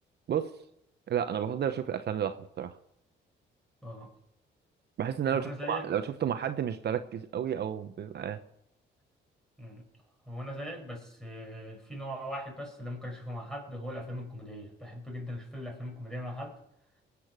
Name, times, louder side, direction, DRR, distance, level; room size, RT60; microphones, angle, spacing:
voice 1, 1.1-2.8 5.0-8.4, right 9 dB, 55° right, 9 dB, 0.8 m, -31 dB
voice 2, 5.3-5.9 9.6-9.8 10.3-16.6, equal, 5° left, 2 dB, 5.6 m, -40 dB
20.5 x 8.5 x 6.1 m, 0.79 s
cardioid pair, 90°, 20 cm